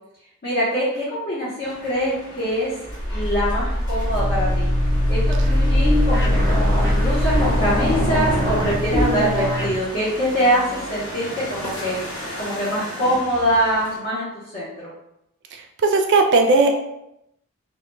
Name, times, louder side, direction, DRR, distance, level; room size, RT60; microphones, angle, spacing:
voice 1, 0.4-2.7 3.1-4.7 5.1-14.3 14.5-14.9, equal, 45° left, -10 dB, 0.7 m, -24 dB
sound 1, 1.6-14.0, equal, 65° left, 1.1 m, -35 dB
sound 2, 2.8-9.5, equal, 90° left, 0.6 m, -22 dB
sound 3, 4.0-9.8, left 1 dB, 10° left, 0.9 m, -24 dB
voice 2, 15.5-16.7, right 3 dB, 50° right, 5 dB, 0.3 m, -17 dB
2.1 x 2.1 x 3.1 m, 0.82 s
head